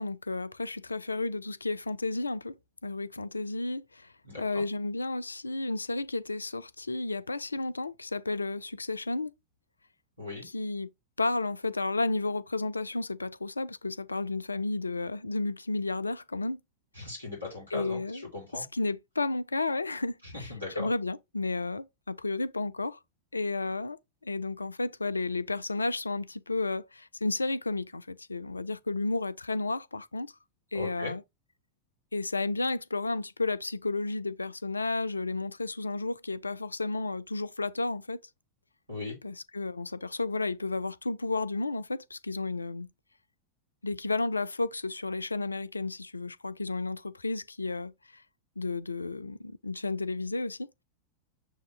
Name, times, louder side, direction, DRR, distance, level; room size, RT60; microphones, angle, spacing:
voice 1, 0.0-2.6 2.8-9.3 10.4-10.9 11.2-16.6 17.7-18.2 18.5-23.0 23.3-24.0 24.2-30.3 30.7-31.2 32.1-38.2 39.2-42.9 43.8-48.2 48.6-50.7, left 3 dB, 80° left, 0.3 m, -32 dB
voice 2, 4.2-4.6 10.2-10.5 16.9-18.6 20.2-20.9 30.7-31.1 38.9-39.2, left 3 dB, 90° right, 2.4 m, -39 dB
6.4 x 2.6 x 3.2 m
figure-of-eight pair, 90°, 0 cm